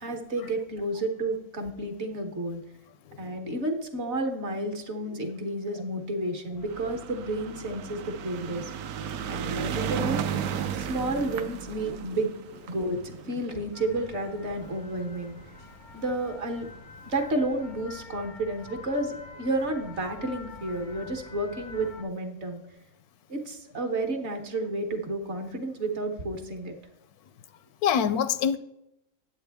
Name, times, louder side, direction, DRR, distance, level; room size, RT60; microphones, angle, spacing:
voice 1, 0.0-2.6 3.2-8.7 9.3-10.2 10.7-12.3 12.7-15.4 15.9-16.7 17.1-22.6 23.3-26.7, right 2 dB, 50° right, 1.3 m, -31 dB
sound 1, 6.6-15.1 15.9-16.0 16.2-16.3 16.6-16.7, right 8 dB, 75° right, 1.1 m, -34 dB
sound 2, 13.7-22.0, left 4 dB, 45° left, 0.6 m, -47 dB
voice 2, 27.8-28.6, left 8 dB, 80° left, 1.1 m, -26 dB
9.0 x 8.3 x 3.4 m
omnidirectional pair, 1.6 m